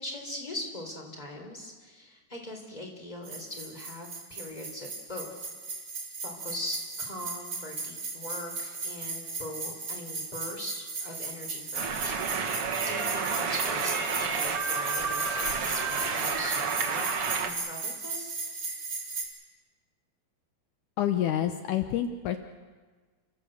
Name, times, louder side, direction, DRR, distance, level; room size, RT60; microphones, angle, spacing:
voice 1, 0.0-5.8 6.2-18.3, left 1 dB, 10° left, 2 dB, 3.3 m, -41 dB
sound 1, 3.2-19.2, right 4 dB, 25° right, 4.3 m, -36 dB
sound 2, 11.7-17.5, right 5 dB, 55° right, 1.6 m, -30 dB
voice 2, 21.0-22.4, left 10 dB, 80° left, 8 dB, 1.7 m, -28 dB
29.5 x 15.0 x 7.9 m, 1.4 s
omnidirectional pair, 4.7 m